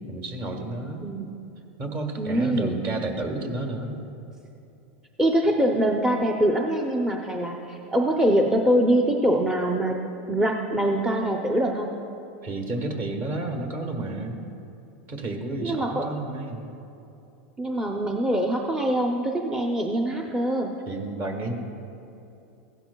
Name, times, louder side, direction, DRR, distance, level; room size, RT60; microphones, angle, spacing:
voice 1, 0.1-1.0 1.8-4.0 12.4-14.4 15.1-16.7 20.9-21.5, right 2 dB, 40° right, 3 dB, 1.5 m, -31 dB
voice 2, 1.0-1.4 2.2-2.8 5.2-10.0 10.3-11.9 15.6-16.1 17.6-20.7, right 1 dB, 10° right, 1 dB, 0.6 m, -24 dB
16.0 x 11.5 x 2.3 m, 2.8 s
supercardioid pair, 130°, 6 cm